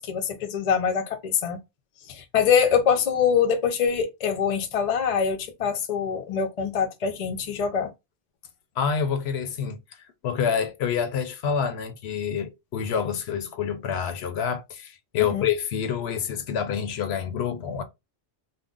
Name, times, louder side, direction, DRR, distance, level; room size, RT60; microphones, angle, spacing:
voice 1, 0.1-1.6 2.1-7.9 15.2-15.5, left 7 dB, 50° left, 0.4 m, -24 dB
voice 2, 8.8-9.8 10.2-17.8, left 7 dB, 70° left, 0.8 m, -27 dB
2.5 x 2.0 x 3.6 m
omnidirectional pair, 1.2 m